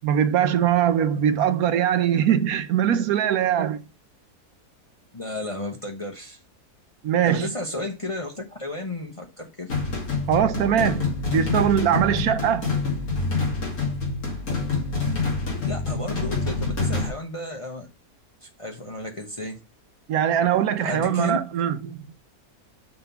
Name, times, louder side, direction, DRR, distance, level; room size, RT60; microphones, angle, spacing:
voice 1, 0.0-3.8 7.0-7.5 10.3-12.7 20.1-22.1, right 9 dB, 70° right, 1.1 m, -22 dB
voice 2, 5.1-6.4 7.2-9.7 15.6-17.9 18.4-19.6 20.8-21.4, left 2 dB, 25° left, 0.8 m, -33 dB
sound 1, 9.7-17.1, left 3 dB, 65° left, 2.8 m, -26 dB
6.7 x 3.9 x 5.6 m
omnidirectional pair, 1.7 m